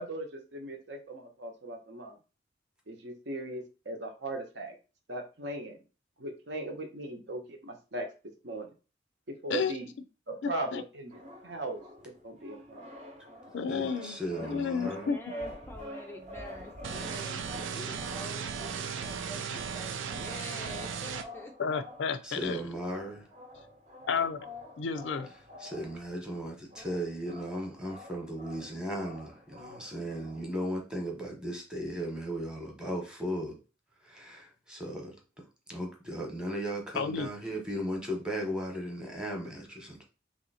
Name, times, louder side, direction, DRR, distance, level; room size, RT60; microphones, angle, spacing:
voice 1, 0.0-2.2 2.9-4.8 5.1-5.8 6.2-8.1 8.4-8.7 9.3-9.9 10.3-12.8, right 2 dB, 65° right, 0.9 m, -38 dB
voice 2, 10.4-10.8 13.5-15.2 21.6-22.6 24.1-24.5 24.8-25.3 37.0-37.3, left 6 dB, 75° left, 0.4 m, -31 dB
sound 1, 11.1-30.5, left 1 dB, 40° right, 0.8 m, -47 dB
voice 3, 13.7-15.1 22.2-23.3 25.6-33.6 34.0-35.1 35.7-40.0, equal, 5° right, 0.9 m, -36 dB
voice 4, 14.4-21.5, left 1 dB, 10° left, 0.4 m, -47 dB
sound 2, 16.8-21.2, right 6 dB, 90° right, 0.4 m, -36 dB
3.1 x 2.8 x 4.1 m
head